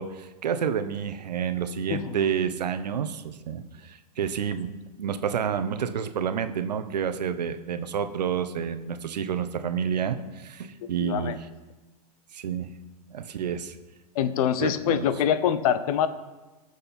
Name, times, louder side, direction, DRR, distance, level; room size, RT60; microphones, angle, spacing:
voice 1, 0.0-4.7 5.0-11.5 12.3-12.7 13.1-13.7 14.6-15.0, right 7 dB, 80° right, 10 dB, 0.9 m, -29 dB
voice 2, 11.0-11.4 14.1-16.1, left 9 dB, 60° left, 13 dB, 0.9 m, -24 dB
18.5 x 6.5 x 4.4 m, 1.2 s
hypercardioid pair, 115°, 21 cm